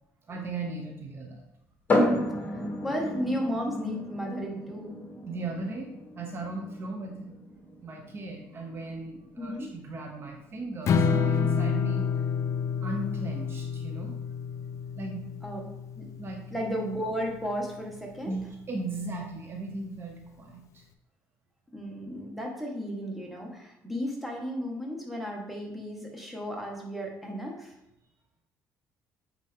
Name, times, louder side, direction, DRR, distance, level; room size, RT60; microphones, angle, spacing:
voice 1, 0.3-1.4 5.2-7.3 7.8-12.0 12.8-14.2 14.9-15.2 16.2-16.6 18.3-20.8, right 2 dB, 40° right, 2 dB, 1.0 m, -37 dB
sound 1, 1.9-15.4, left 1 dB, 35° left, 1.8 m, -34 dB
voice 2, 2.5-5.0 9.4-9.7 15.4-15.7 16.0-16.1 16.5-18.3 21.7-27.7, equal, ahead, -1 dB, 1.8 m, -34 dB
Strum, 10.9-17.1, left 6 dB, 55° left, 0.6 m, -29 dB
8.2 x 4.5 x 3.7 m, 0.83 s
cardioid pair, 95°, 6 cm